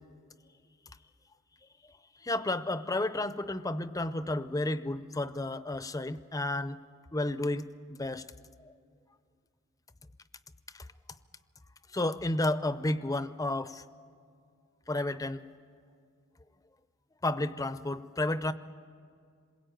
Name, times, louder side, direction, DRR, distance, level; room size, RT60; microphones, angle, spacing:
voice 1, 2.2-6.8 7.1-8.2 8.6-8.7 10.7-10.9 11.9-13.8 14.9-15.4 17.2-18.5, left 2 dB, 15° left, 13 dB, 0.6 m, -32 dB
27.0 x 21.5 x 9.1 m, 2.2 s
head